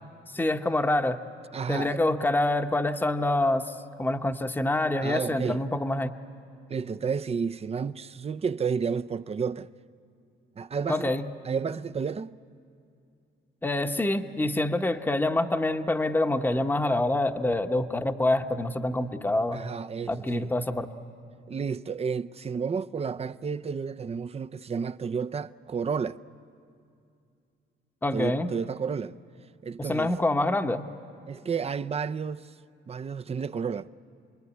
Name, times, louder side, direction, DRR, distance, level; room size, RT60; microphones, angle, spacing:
voice 1, 0.3-1.2 1.7-3.7 4.0-6.1 10.9-11.3 13.6-19.6 20.1-20.9 28.0-28.5 29.8-30.9, left 2 dB, 10° left, 0.9 m, -26 dB
voice 2, 1.5-2.0 5.0-5.6 6.7-9.7 10.6-11.1 11.4-12.4 19.5-20.5 21.5-26.2 28.1-29.2 29.6-30.1 31.3-32.5 32.9-33.9, right 6 dB, 30° right, 0.6 m, -31 dB
28.0 x 21.0 x 9.6 m
cardioid pair, 90°, 20 cm